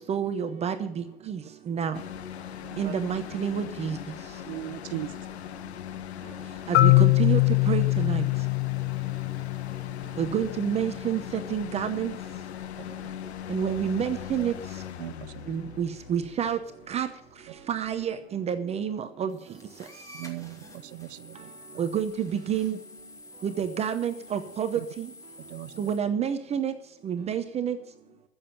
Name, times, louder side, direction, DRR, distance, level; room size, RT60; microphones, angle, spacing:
voice 1, 0.0-2.0 2.8-4.0 6.7-8.3 10.2-12.1 13.5-14.5 15.5-16.6 16.9-17.1 17.7-19.4 21.8-22.8 23.4-25.1 25.8-26.7 27.0-27.8, right 8 dB, 20° right, 0.8 m, -29 dB
sound 1, 1.9-18.1, left 11 dB, 75° left, 1.2 m, -40 dB
voice 2, 2.6-2.9 4.5-5.3 9.9-10.0 12.8-13.1 15.0-15.5 20.1-21.5 24.8-24.9 25.4-25.9, right 17 dB, 55° right, 0.6 m, -39 dB
Marimba xylophone, 6.7-10.6, left 21 dB, 35° left, 0.6 m, -23 dB
voice 3, 18.9-19.7 20.7-20.9 22.4-22.5 22.9-23.2 23.8-23.9 24.2-24.5 25.3-25.4 26.1-26.6 27.2-27.3 27.6-28.2, left 9 dB, 55° left, 3.0 m, -59 dB
sound 2, 19.3-26.0, left 2 dB, 10° left, 2.5 m, -49 dB
14.5 x 7.3 x 6.8 m
hypercardioid pair, 135°, 33 cm